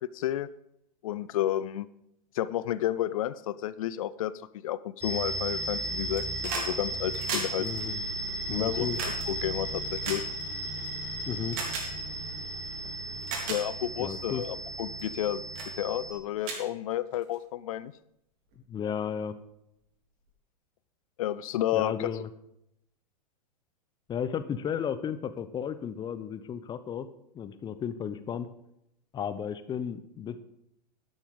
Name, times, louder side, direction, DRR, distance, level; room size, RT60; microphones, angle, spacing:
voice 1, 0.1-0.5 1.0-1.9 2.3-4.3 4.6-7.7 8.5-10.2 13.5-15.4 15.8-17.9 21.2-22.2, left 13 dB, 55° left, 17 dB, 0.5 m, -31 dB
sound 1, 5.0-16.1, right 1 dB, 10° right, 3.8 m, -35 dB
sound 2, 6.0-6.7 7.0-10.9 11.5-11.9 12.7-12.8 13.2-13.6 14.2-14.4 15.0-15.2 15.5-15.7 16.1-16.2 16.4-17.4 18.5-18.6, right 4 dB, 40° right, 3.7 m, -36 dB
voice 2, 7.6-8.0 8.5-9.0 11.3-11.6 14.0-14.4 18.7-19.3 21.7-22.3 24.1-27.1 27.3-28.5 29.1-30.4, left 8 dB, 20° left, 13 dB, 0.8 m, -34 dB
11.5 x 11.5 x 3.8 m, 0.79 s
figure-of-eight pair, 95°, 21 cm